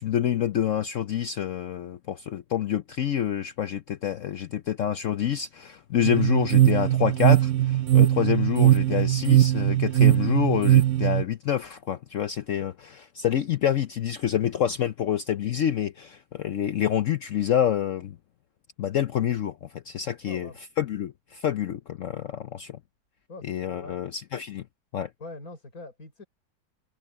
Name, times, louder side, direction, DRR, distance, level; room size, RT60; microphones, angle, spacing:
voice 1, 0.0-12.7 13.1-18.2 18.8-20.5 20.8-22.8 23.5-24.6 24.9-25.1, left 10 dB, 80° left, 0.7 m, -27 dB
sound 1, 6.0-11.2, right 13 dB, 65° right, 0.7 m, -20 dB
voice 2, 20.2-20.6 23.3-24.0 25.2-26.2, left 2 dB, 45° left, 6.4 m, -43 dB
omnidirectional pair, 2.1 m